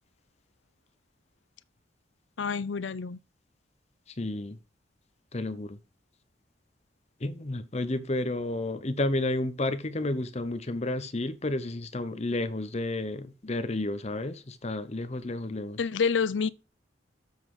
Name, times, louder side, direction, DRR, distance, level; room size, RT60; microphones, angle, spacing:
voice 1, 2.4-3.2 15.8-16.5, left 5 dB, 90° left, 0.6 m, -28 dB
voice 2, 4.2-4.6 5.3-5.8 7.2-15.8, left 2 dB, 35° left, 0.9 m, -31 dB
7.4 x 5.7 x 4.8 m
head